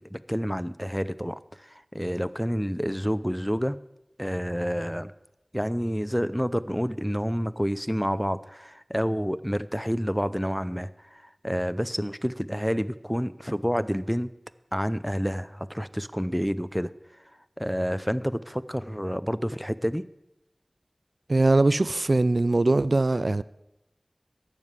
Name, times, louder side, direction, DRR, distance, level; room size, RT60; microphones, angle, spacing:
voice 1, 0.1-3.8 4.2-5.1 5.5-14.3 14.7-16.9 17.6-20.0, equal, ahead, 0.5 m, -29 dB
voice 2, 21.3-23.4, right 2 dB, 75° right, 0.3 m, -21 dB
12.5 x 7.4 x 8.1 m
wide cardioid pair, 50°, 0 cm